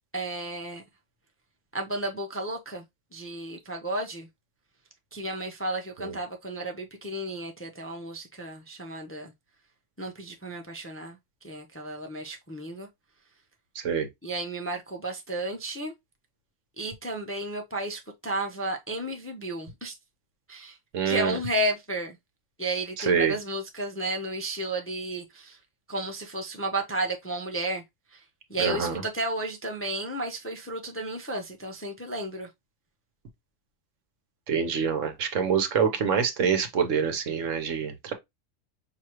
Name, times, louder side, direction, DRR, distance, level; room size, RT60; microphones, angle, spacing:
voice 1, 0.1-0.8 1.7-2.8 3.1-4.3 5.1-9.3 10.0-11.2 11.4-12.9 14.2-15.9 16.8-20.0 20.5-20.8 21.0-22.2 22.6-25.6 25.9-27.8 28.1-28.2 28.5-32.5, right 1 dB, 15° left, 0.5 m, -33 dB
voice 2, 13.7-14.1 20.9-21.4 23.0-23.3 28.6-29.0 34.5-38.1, right 6 dB, 70° right, 1.3 m, -26 dB
6.0 x 2.8 x 3.0 m
omnidirectional pair, 1.4 m